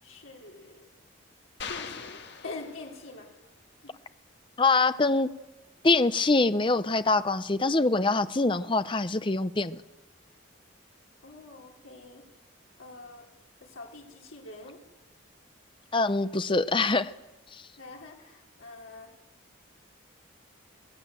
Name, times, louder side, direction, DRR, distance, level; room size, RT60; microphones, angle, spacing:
voice 1, 0.0-0.9 1.7-3.3 3.8-3.9 11.2-12.2 12.8-13.2 13.6-14.8 17.8-19.1, left 3 dB, 80° left, 0 dB, 3.7 m, -45 dB
sound 1, 1.6-3.3, left 6 dB, 55° left, 1.7 m, -41 dB
voice 2, 4.6-5.3 5.8-9.8 15.9-17.1, left 3 dB, 25° left, 12 dB, 0.7 m, -24 dB
24.0 x 17.0 x 7.7 m, 1.1 s
head